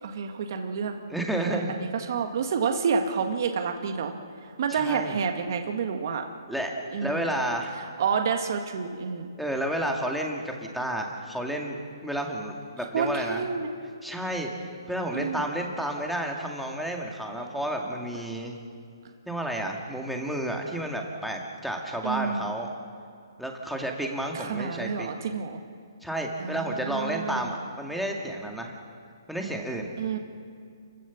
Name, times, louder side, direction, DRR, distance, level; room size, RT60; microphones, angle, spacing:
voice 1, 0.0-1.0 1.4-4.1 4.6-6.2 6.9-7.3 7.8-9.3 12.9-13.7 15.1-15.4 22.0-22.5 24.3-25.6 26.4-27.5 30.0-30.2, right 6 dB, 50° right, 4 dB, 1.7 m, -29 dB
voice 2, 1.1-1.7 4.7-5.2 6.5-6.7 7.0-7.7 9.4-11.8 12.0-13.4 14.0-14.5 14.9-18.6 19.3-22.7 23.4-25.1 26.0-28.8 29.3-29.9, right 1 dB, ahead, 0 dB, 2.0 m, -31 dB
29.5 x 15.0 x 7.2 m, 2.2 s
hypercardioid pair, 160°, 2 cm